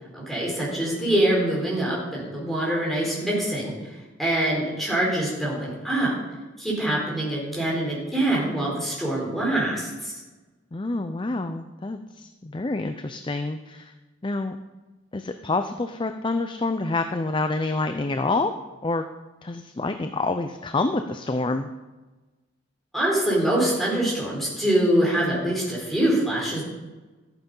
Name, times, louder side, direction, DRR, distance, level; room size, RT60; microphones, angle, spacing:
voice 1, 0.1-3.7 4.2-6.1 6.6-10.1 22.9-26.6, right 1 dB, ahead, -5 dB, 4.2 m, -24 dB
voice 2, 10.7-13.9 14.2-14.6 15.1-18.5 18.8-19.0 19.4-21.7, left 3 dB, 25° left, 8 dB, 0.5 m, -27 dB
13.5 x 9.0 x 5.5 m, 1.2 s
head